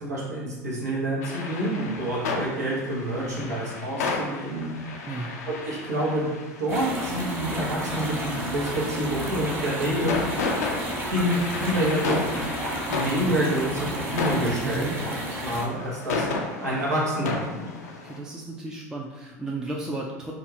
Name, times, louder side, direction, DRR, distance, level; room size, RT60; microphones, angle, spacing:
voice 1, 0.0-4.7 5.4-6.3 6.6-10.1 11.0-12.3 12.9-16.3 16.6-17.6, right 1 dB, 90° right, -5 dB, 0.8 m, -28 dB
sound 1, 1.2-18.2, left 3 dB, 75° left, 0.4 m, -33 dB
sound 2, 6.7-15.7, right 1 dB, 25° right, 0.9 m, -32 dB
voice 2, 14.6-15.0 18.0-20.3, right 2 dB, 5° right, -2 dB, 0.3 m, -33 dB
2.4 x 2.3 x 3.2 m, 1.2 s
hypercardioid pair, 75°, 9 cm